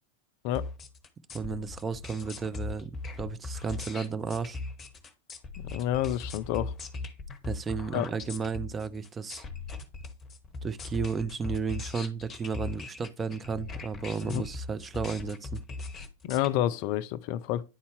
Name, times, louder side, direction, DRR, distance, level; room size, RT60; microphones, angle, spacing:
sound 1, 0.5-16.5, left 3 dB, 20° left, 1.0 m, -39 dB
voice 1, 1.3-4.6 7.4-9.4 10.6-15.6, right 5 dB, 20° right, 0.5 m, -33 dB
voice 2, 5.7-6.7 7.9-8.1 14.3-14.4 16.2-17.6, left 12 dB, 45° left, 0.4 m, -29 dB
10.0 x 4.1 x 3.2 m
figure-of-eight pair, 90°, 0 cm